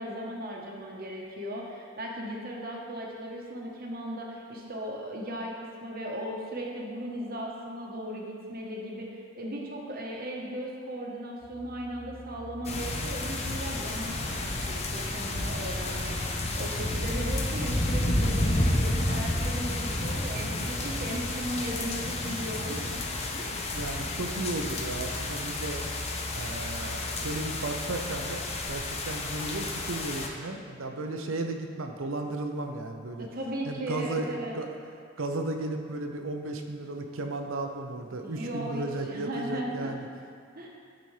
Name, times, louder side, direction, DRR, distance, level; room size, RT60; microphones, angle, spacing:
voice 1, 0.0-23.0 23.3-23.6 33.2-34.5 38.1-39.9 40.5-40.7, right 1 dB, 50° right, -1 dB, 1.0 m, -37 dB
sound 1, 11.4-29.9, equal, 25° right, 0.9 m, -44 dB
sound 2, 12.7-30.3, left 1 dB, 30° left, 0.7 m, -31 dB
voice 2, 23.7-25.8 26.3-33.3 33.7-34.7 35.2-40.1, right 2 dB, 85° right, 4 dB, 0.7 m, -34 dB
11.5 x 4.2 x 3.2 m, 2.3 s
head